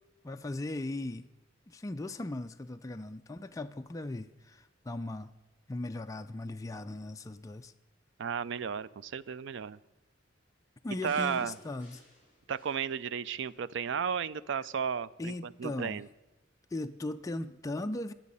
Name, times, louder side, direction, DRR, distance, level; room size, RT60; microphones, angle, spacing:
voice 1, 0.2-1.3 1.7-5.3 5.7-7.7 10.8-12.0 15.2-16.0 16.7-18.1, left 2 dB, 15° left, 7 dB, 0.4 m, -38 dB
voice 2, 8.2-9.8 11.0-11.5 12.5-16.1, right 7 dB, 65° right, 18 dB, 0.4 m, -34 dB
sound 1, 11.1-13.5 14.0-14.2, left 1 dB, 10° right, 6.4 m, -57 dB
21.5 x 7.4 x 5.5 m, 1.0 s
head